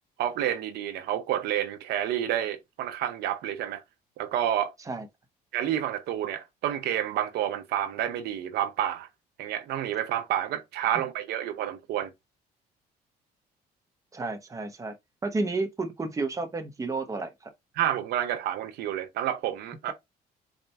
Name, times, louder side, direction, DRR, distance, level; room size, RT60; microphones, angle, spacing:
voice 1, 0.2-3.8 4.2-4.7 5.5-9.1 9.4-12.1 17.8-19.9, right 11 dB, 75° right, 0.6 m, -29 dB
voice 2, 14.1-14.9 15.2-17.5, right 3 dB, 20° right, 0.9 m, -31 dB
4.2 x 2.4 x 3.3 m
cardioid pair, 110°, 17 cm